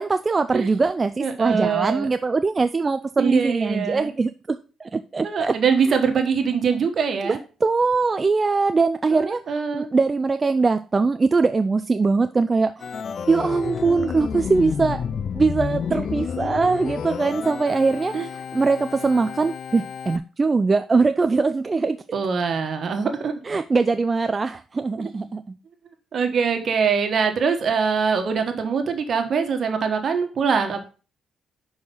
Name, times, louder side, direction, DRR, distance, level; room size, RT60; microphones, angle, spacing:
voice 1, 0.0-5.5 5.9-6.0 7.2-7.3 7.6-9.4 9.7-12.9 13.3-15.0 15.3-22.0 23.4-25.6, right 4 dB, 30° right, 10 dB, 0.4 m, -22 dB
voice 2, 1.2-2.1 3.2-4.1 5.2-7.4 9.1-9.9 18.1-18.3 22.1-23.3 25.0-25.1 26.1-30.9, right 6 dB, 55° right, 6 dB, 1.4 m, -23 dB
Organ, 12.8-20.2, left 6 dB, 55° left, 0.5 m, -30 dB
6.0 x 4.8 x 5.4 m, 0.35 s
cardioid pair, 90°, 0 cm